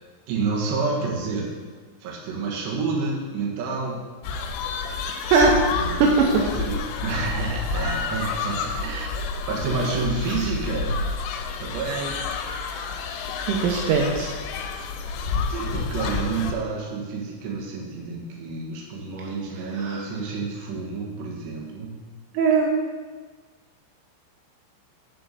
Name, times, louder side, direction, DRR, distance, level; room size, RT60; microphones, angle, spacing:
voice 1, 0.3-1.6 2.0-4.1 5.8-9.1 9.5-11.0 11.6-12.2 15.5-22.0, right 4 dB, 65° right, -2 dB, 3.5 m, -29 dB
sound 1, 4.2-16.5, left 4 dB, 90° left, 3.4 m, -29 dB
voice 2, 13.5-14.3 19.8-20.0 22.4-22.7, right 4 dB, 85° right, -1 dB, 3.4 m, -19 dB
11.0 x 4.5 x 6.7 m, 1.4 s
omnidirectional pair, 5.7 m